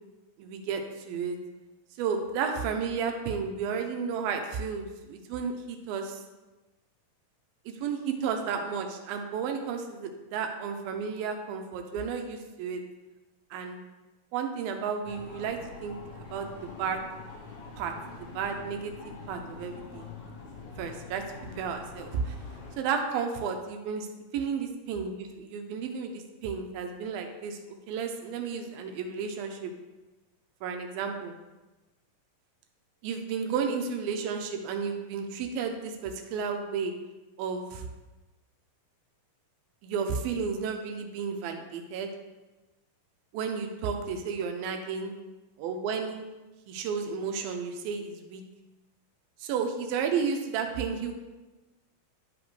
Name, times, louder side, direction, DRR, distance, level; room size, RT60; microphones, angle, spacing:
voice 1, 0.4-1.4 2.0-6.2 7.7-12.8 13.5-13.8 14.3-16.0 16.3-16.5 16.8-17.0 17.8-17.9 18.2-20.1 20.8-21.2 21.6-22.3 22.8-24.1 24.3-27.6 27.9-29.7 30.6-31.3 33.0-36.9 37.4-37.9 39.8-42.1 43.3-45.1 45.6-46.2 46.7-48.4 49.4-51.1, right 6 dB, 85° right, 4 dB, 2.5 m, -32 dB
sound 1, 15.0-22.8, left 4 dB, 65° left, 2.1 m, -45 dB
11.0 x 5.1 x 3.1 m, 1.1 s
omnidirectional pair, 4.2 m